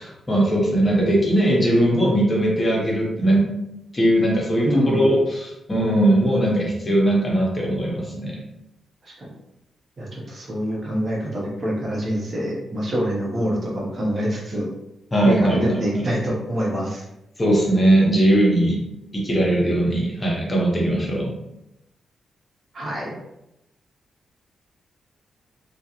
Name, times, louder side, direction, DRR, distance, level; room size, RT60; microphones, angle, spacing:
voice 1, 0.0-3.5 3.9-8.3 15.1-16.0 17.4-18.8 19.1-21.3, right 1 dB, 30° left, -3 dB, 0.9 m, -19 dB
voice 2, 4.6-5.1 9.0-9.3 10.0-14.7 15.3-17.0 22.7-23.1, equal, 50° right, -3 dB, 0.9 m, -25 dB
2.4 x 2.3 x 2.9 m, 0.86 s
cardioid pair, 60°, 0 cm